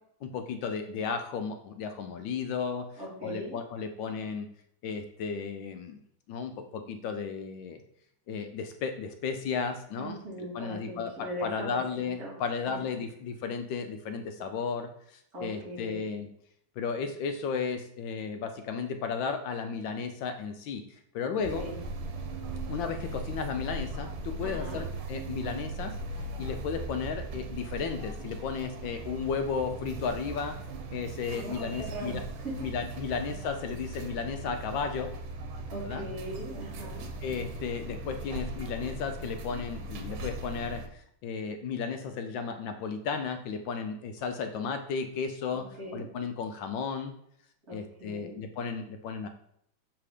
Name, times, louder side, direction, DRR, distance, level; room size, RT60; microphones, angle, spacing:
voice 1, 0.2-2.9 3.2-4.5 4.8-6.0 6.3-7.8 8.3-11.1 11.4-16.3 16.8-20.8 21.1-21.6 22.7-26.0 26.4-30.6 30.9-32.2 32.6-35.1 35.8-36.1 37.2-45.7 45.9-47.1 47.7-49.3, left 5 dB, 75° left, 7 dB, 1.2 m, -34 dB
voice 2, 3.0-3.6 10.0-12.3 15.3-16.0 21.3-21.8 24.4-24.8 31.3-32.5 35.7-37.1 45.5-46.0 47.7-48.4, right 1 dB, 45° right, -3 dB, 2.6 m, -40 dB
sound 1, 21.4-40.9, right 2 dB, 75° right, 1.6 m, -39 dB
7.0 x 3.4 x 4.9 m, 0.71 s
omnidirectional pair, 2.2 m